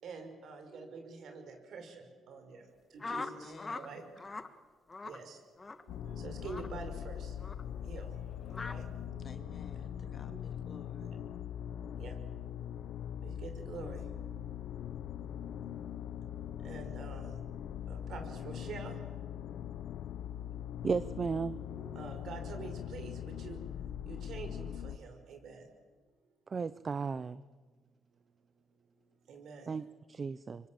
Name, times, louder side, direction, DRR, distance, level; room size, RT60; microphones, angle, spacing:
voice 1, 0.0-4.0 5.0-5.4 5.8-7.4 7.7-8.2 8.5-9.6 10.3-10.4 11.0-11.1 12.0-12.2 13.2-14.1 16.6-17.4 17.9-19.0 21.7-23.6 24.0-25.7 29.3-29.7, right 4 dB, 70° right, 6 dB, 5.9 m, -47 dB
voice 2, 3.0-4.0 9.2-11.1, left 4 dB, 45° left, 6 dB, 3.2 m, -53 dB
sound 1, 3.0-3.9 4.2-4.5 4.9-5.2 5.6-5.8 6.4-6.7 7.4-7.6 8.5-8.8, left 3 dB, 25° left, 1.8 m, -41 dB
sound 2, 5.9-25.0, left 9 dB, 80° left, 0.8 m, -41 dB
voice 3, 20.8-21.5 26.5-27.4 29.7-30.7, right 5 dB, 40° right, 16 dB, 0.7 m, -35 dB
26.0 x 24.5 x 7.9 m, 1.4 s
cardioid pair, 90°, 0 cm